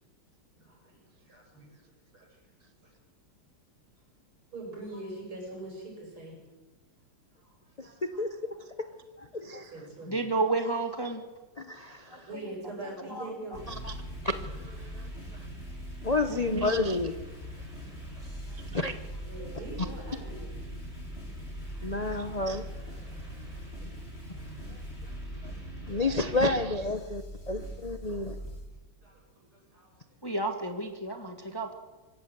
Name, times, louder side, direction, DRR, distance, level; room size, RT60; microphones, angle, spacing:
voice 1, 0.5-1.7 2.1-2.4 2.8-2.9 4.5-6.4 7.3-7.5 7.8-8.6 8.8-8.9 9.4-10.2 12.2-13.6 18.2-18.6 19.1-20.5 21.6-22.1 23.8-23.9 28.2-28.3 29.0-29.9, right 2 dB, 85° right, -1 dB, 8.3 m, -44 dB
voice 2, 8.0-8.3 9.2-9.7 11.7-12.3 13.8-13.9 14.2-15.1 16.0-17.1 18.7-18.9 21.8-22.7 25.8-28.3, left 2 dB, 80° left, 8 dB, 0.3 m, -30 dB
voice 3, 10.1-11.2 12.1-12.2 13.1-13.3 16.3-16.7 30.2-31.7, right 3 dB, 10° left, 5 dB, 1.7 m, -31 dB
sound 1, 13.5-28.7, equal, 30° left, 8.2 m, -41 dB
24.5 x 14.5 x 8.0 m, 1.2 s
omnidirectional pair, 2.3 m